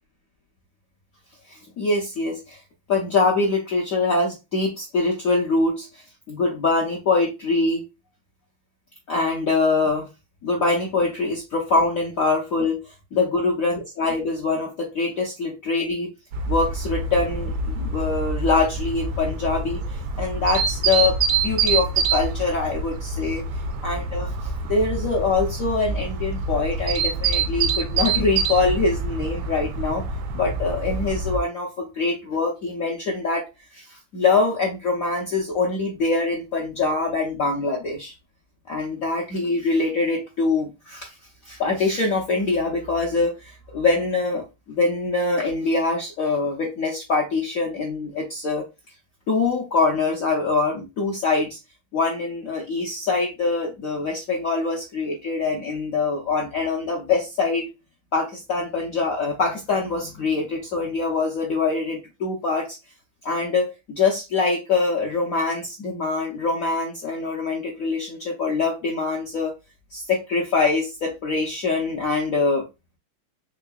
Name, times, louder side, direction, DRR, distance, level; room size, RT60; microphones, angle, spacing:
voice 1, 1.5-2.6 2.9-5.9 6.3-7.8 9.1-10.1 10.4-12.8 13.1-16.1 16.5-21.2 21.4-23.4 23.8-24.3 24.7-30.0 30.3-33.4 33.7-38.1 38.7-41.1 41.4-48.6 49.3-51.6 51.9-57.7 58.1-62.8 63.2-69.5 69.9-72.6, left 3 dB, 70° left, -2 dB, 0.8 m, -24 dB
sound 1, 16.3-31.4, right 4 dB, 75° right, 0.9 m, -26 dB
3.8 x 3.3 x 2.3 m, 0.26 s
omnidirectional pair, 2.3 m